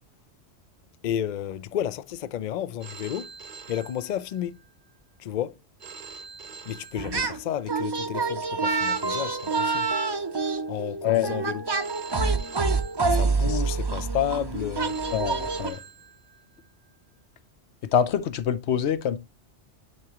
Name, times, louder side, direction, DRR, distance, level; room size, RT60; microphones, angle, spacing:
voice 1, 1.0-3.3 3.7-4.6 5.2-5.6 6.7-9.9 10.7-11.6 13.1-15.0, left 10 dB, 60° left, 0.5 m, -31 dB
Telephone, 2.8-4.7 5.8-7.7 8.8-10.7 11.8-13.7 14.8-16.7, right 5 dB, 45° right, 1.0 m, -45 dB
sound 1, 7.0-7.4 7.7-15.7, right 4 dB, 30° right, 0.5 m, -27 dB
voice 2, 15.1-15.8 17.9-19.2, left 9 dB, 75° left, 1.0 m, -25 dB
9.5 x 4.8 x 2.9 m
omnidirectional pair, 1.2 m